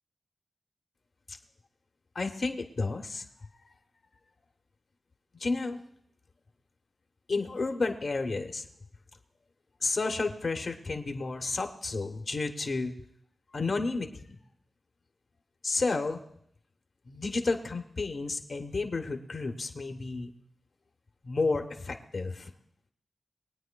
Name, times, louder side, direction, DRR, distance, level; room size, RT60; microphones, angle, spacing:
voice 1, 2.1-3.2 5.4-5.8 7.3-8.7 9.8-12.9 13.5-14.4 15.6-16.2 17.1-20.3 21.2-22.5, left 3 dB, 50° left, 5 dB, 1.0 m, -31 dB
23.0 x 9.1 x 2.3 m, 0.70 s
wide cardioid pair, 125°, 0 cm